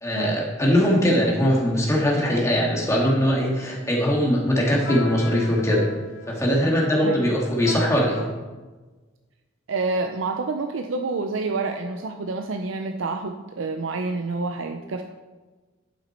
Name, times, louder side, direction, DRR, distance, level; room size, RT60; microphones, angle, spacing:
voice 1, 0.0-5.9 6.3-8.3, equal, 15° left, -3 dB, 1.9 m, -21 dB
sound 1, 2.3-2.5 2.9-3.4 4.0-8.2, left 3 dB, 85° left, 1.6 m, -38 dB
voice 2, 9.7-15.0, right 3 dB, 80° right, 5 dB, 0.5 m, -28 dB
11.0 x 6.2 x 4.3 m, 1.3 s
head